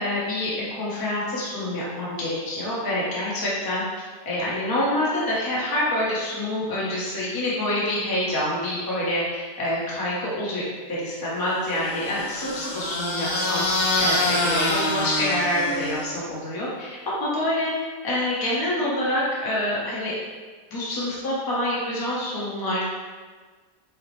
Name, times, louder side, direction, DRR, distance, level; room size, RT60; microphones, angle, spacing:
voice 1, 0.0-3.8 4.2-10.6 11.0-17.7 18.0-20.2 20.7-22.8, left 1 dB, 25° left, -7 dB, 0.4 m, -26 dB
sound 1, 11.7-16.3, left 1 dB, 65° left, 0.9 m, -26 dB
5.5 x 2.0 x 3.1 m, 1.4 s
omnidirectional pair, 1.9 m